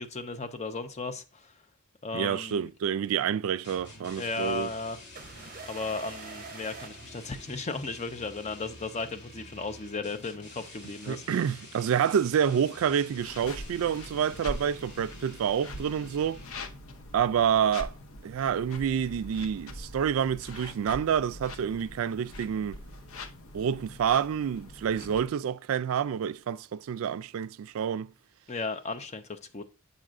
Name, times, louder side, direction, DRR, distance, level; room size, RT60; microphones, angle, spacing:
voice 1, 0.0-1.5 2.0-2.7 4.2-5.0 5.7-11.2 28.5-29.6, left 3 dB, 30° left, 0.6 m, -35 dB
voice 2, 2.1-4.7 11.1-16.4 17.1-17.9 18.2-22.8 23.5-28.1, right 8 dB, 75° right, 0.3 m, -28 dB
sound 1, 3.6-16.7, left 2 dB, 50° left, 2.1 m, -49 dB
sound 2, 5.2-7.9, right 6 dB, 40° right, 0.7 m, -46 dB
sound 3, 13.2-25.3, left 1 dB, 75° left, 0.7 m, -43 dB
7.5 x 5.4 x 2.5 m
head